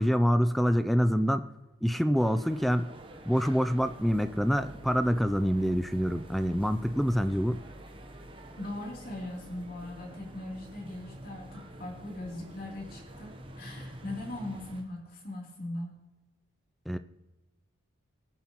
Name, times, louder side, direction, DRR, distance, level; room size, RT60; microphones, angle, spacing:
voice 1, 0.0-1.5 1.8-2.9 3.3-7.6 16.9-17.0, equal, ahead, 11 dB, 0.3 m, -26 dB
sound 1, 2.1-14.8, right 1 dB, 25° right, 0.9 m, -47 dB
voice 2, 8.6-13.3 13.6-16.0, left 1 dB, 45° left, -3 dB, 3.0 m, -39 dB
20.0 x 7.3 x 3.0 m, 1.1 s
head